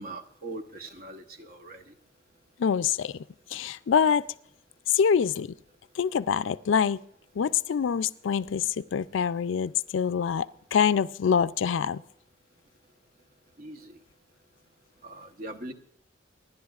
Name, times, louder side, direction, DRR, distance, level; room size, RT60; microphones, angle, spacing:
voice 1, 0.0-1.9 13.6-14.0 15.0-15.7, right 2 dB, 50° right, 6 dB, 1.0 m, -41 dB
voice 2, 2.6-3.1 3.5-4.3 4.9-5.5 6.0-7.0 7.4-10.5 10.7-12.0, left 7 dB, 85° left, 16 dB, 0.4 m, -25 dB
25.5 x 11.0 x 2.4 m, 0.72 s
head